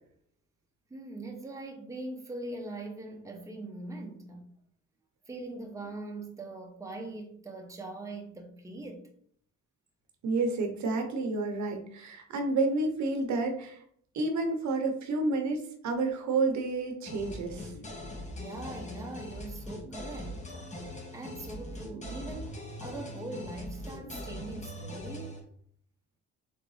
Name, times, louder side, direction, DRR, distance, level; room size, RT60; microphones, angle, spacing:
voice 1, 0.9-4.5 5.3-9.1 18.4-25.4, right 2 dB, 10° right, 0.8 m, -42 dB
voice 2, 10.2-13.8 14.1-17.7, right 3 dB, 70° right, 0.8 m, -30 dB
sound 1, 17.1-25.4, left 1 dB, 25° left, 1.1 m, -41 dB
3.7 x 3.4 x 3.2 m
cardioid pair, 90°, 30 cm